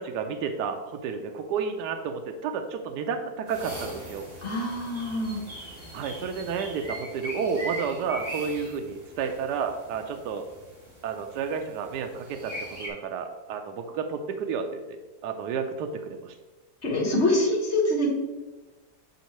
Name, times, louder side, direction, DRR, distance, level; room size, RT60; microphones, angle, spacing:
voice 1, 0.0-4.3 5.9-10.4 11.0-14.7 15.2-16.4, right 6 dB, 80° right, 5 dB, 1.2 m, -31 dB
sound 1, 3.5-12.9, right 1 dB, 35° right, 2.0 m, -41 dB
voice 2, 4.4-5.4 16.8-18.1, left 1 dB, 45° left, -2 dB, 1.4 m, -25 dB
8.2 x 4.3 x 3.0 m, 1.2 s
omnidirectional pair, 1.8 m